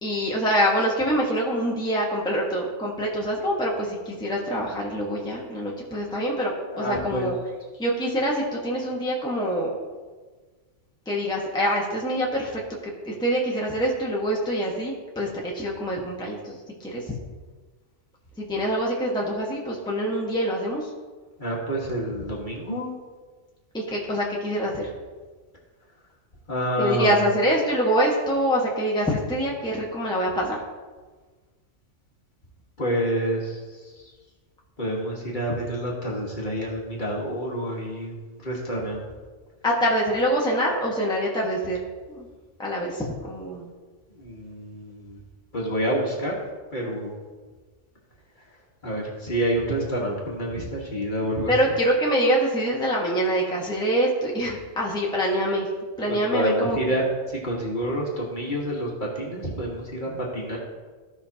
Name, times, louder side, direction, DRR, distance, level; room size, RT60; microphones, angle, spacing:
voice 1, 0.0-7.3 7.8-9.7 11.1-12.6 13.0-17.0 18.4-20.9 23.7-24.9 26.8-30.6 39.6-41.8 42.1-42.3 42.6-43.7 51.5-55.7 56.0-57.0 60.1-60.2, equal, 5° left, -4 dB, 1.3 m, -25 dB
voice 2, 6.7-7.3 21.4-22.9 26.5-27.1 32.8-33.9 34.8-39.0 44.2-45.2 45.5-46.4 46.7-47.1 48.8-51.5 56.1-60.6, equal, 40° left, -3 dB, 1.6 m, -28 dB
15.5 x 5.7 x 2.9 m, 1.4 s
omnidirectional pair, 1.4 m